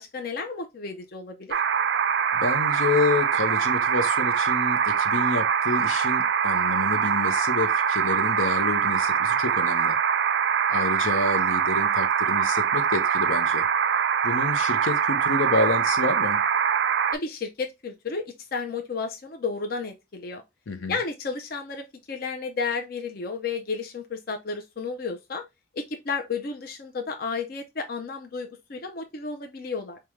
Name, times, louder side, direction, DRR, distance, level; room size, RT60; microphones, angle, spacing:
voice 1, 0.0-1.6 17.1-18.2 18.5-20.4 20.9-25.4 25.7-30.0, left 4 dB, 50° left, 0.5 m, -32 dB
sound 1, 1.5-17.2, right 7 dB, 55° right, 0.3 m, -23 dB
voice 2, 2.3-10.0 10.7-13.6 14.2-16.4 20.7-21.0, left 3 dB, 85° left, 0.7 m, -28 dB
5.0 x 2.3 x 3.0 m
head